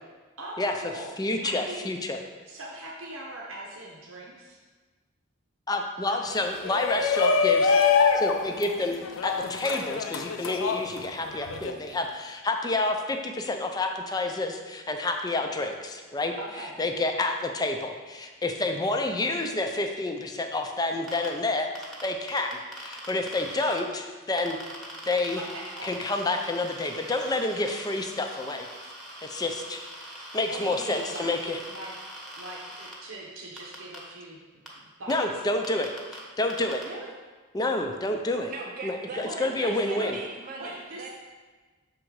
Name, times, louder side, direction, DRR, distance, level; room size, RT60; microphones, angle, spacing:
voice 1, 0.4-1.9 2.5-4.6 6.0-6.8 16.4-16.7 25.3-25.9 30.5-31.3 31.7-31.9 32.4-34.4 34.8-35.3 36.8-37.1 39.2-40.2 40.6-41.1, right 1 dB, 80° right, -3 dB, 0.9 m, -41 dB
voice 2, 1.2-2.2 5.7-7.8 8.1-16.3 16.8-24.6 25.0-25.4 25.8-28.7 29.2-29.8 30.3-31.6 35.1-35.9 36.4-36.8 37.5-38.5 38.8-40.2, left 2 dB, 20° left, 4 dB, 0.4 m, -29 dB
Shout, 6.6-11.7, left 5 dB, 85° left, 0.5 m, -25 dB
sound 1, 21.1-21.3 21.8-23.8 24.4-32.9 33.6-34.0 34.7-34.8 35.1-35.2 35.6-36.2 36.5-36.8, equal, ahead, 1.0 m, -43 dB
voice 3, 38.5-41.1, right 3 dB, 45° right, -1 dB, 0.5 m, -40 dB
6.3 x 3.7 x 4.6 m, 1.3 s
head